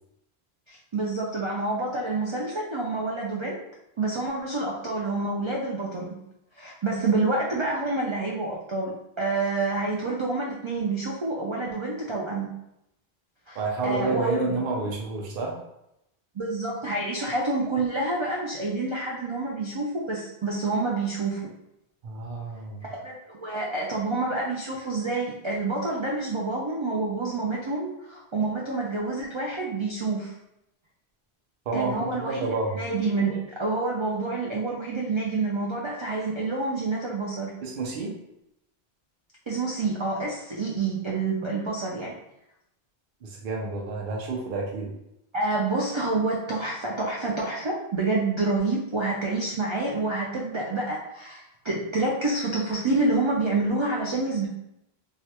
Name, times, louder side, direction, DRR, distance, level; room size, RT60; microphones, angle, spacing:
voice 1, 0.7-3.6 4.0-6.2 6.6-12.5 13.5-14.5 16.3-21.5 22.8-30.3 31.7-32.5 32.7-37.5 39.5-42.1 45.3-54.5, right 3 dB, 50° right, -3 dB, 0.3 m, -28 dB
voice 2, 13.5-15.6 22.0-22.9 31.7-32.8 37.6-38.1 43.2-44.9, right 3 dB, 65° right, -1 dB, 0.8 m, -29 dB
3.2 x 2.4 x 2.8 m, 0.82 s
omnidirectional pair, 1.1 m